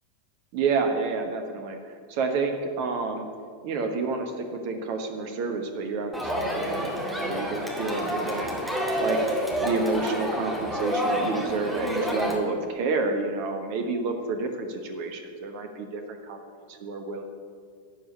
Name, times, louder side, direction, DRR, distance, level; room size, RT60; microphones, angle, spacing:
voice 1, 0.5-3.3 3.6-8.7 9.0-9.3 9.6-16.4 16.7-17.2, right 4 dB, 45° right, 5 dB, 1.2 m, -29 dB
Crowd, 6.1-12.4, equal, 5° right, 2.1 m, -28 dB
12.5 x 5.1 x 8.8 m, 2.1 s
figure-of-eight pair, 90°, 0 cm